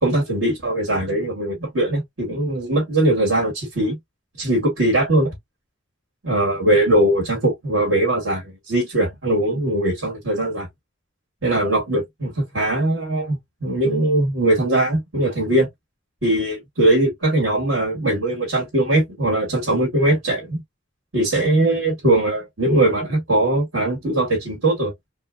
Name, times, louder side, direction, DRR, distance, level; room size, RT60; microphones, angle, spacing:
voice 1, 0.0-4.0 4.4-5.3 6.2-10.7 11.4-15.7 16.2-20.6 21.1-24.9, right 1 dB, 70° right, 2.1 m, -20 dB
4.4 x 2.3 x 2.4 m
head